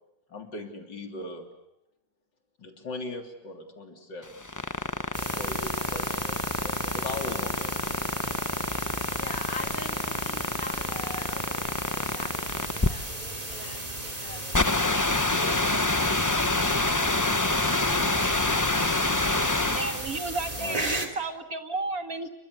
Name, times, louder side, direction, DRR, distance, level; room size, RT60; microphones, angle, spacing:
voice 1, 0.3-1.5 2.6-4.3 5.3-8.1 20.5-21.0, left 2 dB, 75° left, 4 dB, 3.9 m, -39 dB
sound 1, 4.2-20.1, left 2 dB, 20° left, 0.5 m, -27 dB
sound 2, 5.1-21.1, right 2 dB, 20° right, 3.0 m, -36 dB
voice 2, 9.1-14.9 15.4-16.0, left 3 dB, 50° left, 5 dB, 3.3 m, -43 dB
voice 3, 19.7-22.3, right 3 dB, 50° right, 7 dB, 2.4 m, -32 dB
29.0 x 24.0 x 8.3 m, 0.85 s
omnidirectional pair, 1.9 m